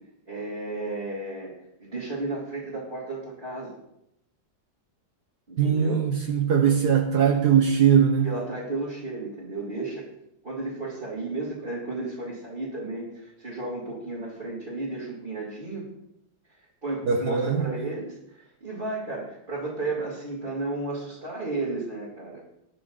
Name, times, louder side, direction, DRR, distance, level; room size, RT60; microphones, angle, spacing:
voice 1, 0.3-3.8 5.5-6.0 8.2-10.1 10.4-15.8 16.8-22.4, right 2 dB, 25° right, 2.7 m, -33 dB
voice 2, 5.6-8.3 17.1-17.6, right 7 dB, 60° right, 1.3 m, -21 dB
19.5 x 6.8 x 4.0 m
omnidirectional pair, 2.1 m